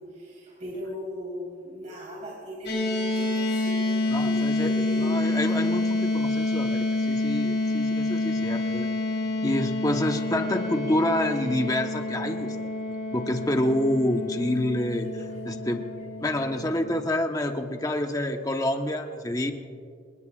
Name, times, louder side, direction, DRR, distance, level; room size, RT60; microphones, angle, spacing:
voice 1, 0.0-5.2 8.2-8.4 15.5-16.0 17.9-18.0 18.7-19.0, left 1 dB, 40° right, -5 dB, 4.0 m, -39 dB
sound 1, 2.7-17.1, left 2 dB, 65° left, 5.4 m, -28 dB
voice 2, 4.1-8.9 9.4-15.8 16.2-19.5, left 1 dB, 20° left, 5 dB, 1.0 m, -28 dB
28.0 x 19.5 x 2.4 m, 2.2 s
head